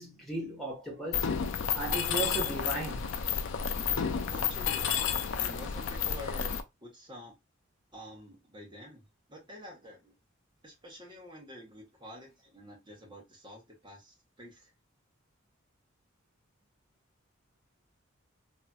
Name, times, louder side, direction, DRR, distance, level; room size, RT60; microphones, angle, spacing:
voice 1, 0.0-3.1, right 2 dB, ahead, 1.0 m, -37 dB
Mechanisms, 1.1-6.6, left 7 dB, 60° left, 0.3 m, -31 dB
voice 2, 4.3-5.1 5.4-7.3 7.9-9.0 9.3-10.1 10.6-14.7, left 1 dB, 20° right, 1.0 m, -48 dB
3.1 x 2.8 x 2.2 m
head